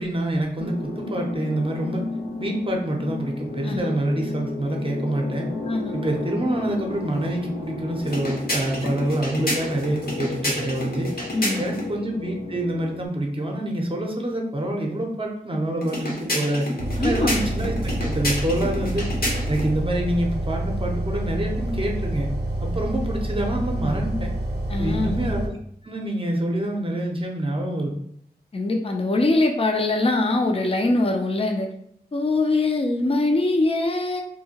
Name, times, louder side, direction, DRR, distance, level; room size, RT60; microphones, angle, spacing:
voice 1, 0.0-2.0 2.4-5.5 5.9-11.1 11.6-16.7 17.0-22.3 22.6-24.3 24.8-25.5 25.8-28.0, right 1 dB, 35° right, 1 dB, 0.6 m, -26 dB
sound 1, 0.6-13.1, left 3 dB, 90° left, 0.5 m, -34 dB
sound 2, 8.0-11.9 15.8-19.7, left 1 dB, 60° left, 0.9 m, -29 dB
voice 2, 11.3-11.7 17.0-17.4 24.7-25.2 28.5-31.7 32.1-34.2, left 2 dB, 35° left, 2 dB, 0.4 m, -22 dB
sound 3, 16.8-25.5, right 1 dB, 85° right, 0.5 m, -28 dB
2.7 x 2.1 x 2.8 m, 0.70 s
wide cardioid pair, 45°, 17 cm